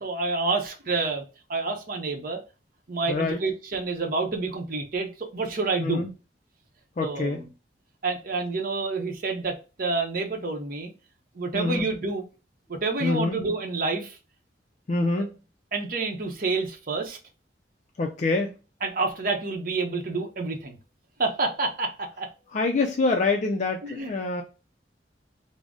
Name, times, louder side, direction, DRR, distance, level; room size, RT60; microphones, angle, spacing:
voice 1, 0.0-1.2 1.5-2.4 2.9-6.0 7.0-7.5 8.0-10.9 11.3-12.2 12.7-14.2 15.7-17.2 18.8-20.8 21.2-22.3 23.8-24.1, right 3 dB, 50° right, 0.7 m, -28 dB
voice 2, 3.1-3.4 5.8-6.1 7.0-7.4 11.5-11.8 13.0-13.4 14.9-15.3 18.0-18.5 22.5-24.4, left 3 dB, 40° left, 0.4 m, -25 dB
3.8 x 2.0 x 3.5 m
head